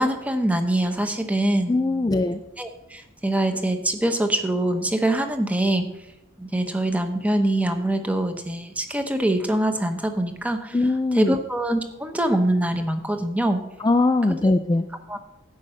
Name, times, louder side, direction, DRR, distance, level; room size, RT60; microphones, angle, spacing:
voice 1, 0.0-2.0 2.6-5.9 6.4-10.8 11.1-13.6 14.4-14.5 15.1-15.2, right 1 dB, 5° right, 7 dB, 0.8 m, -24 dB
voice 2, 1.7-2.4 10.7-11.4 13.8-14.9, left 2 dB, 20° left, 7 dB, 0.3 m, -21 dB
10.5 x 5.3 x 7.6 m, 0.89 s
head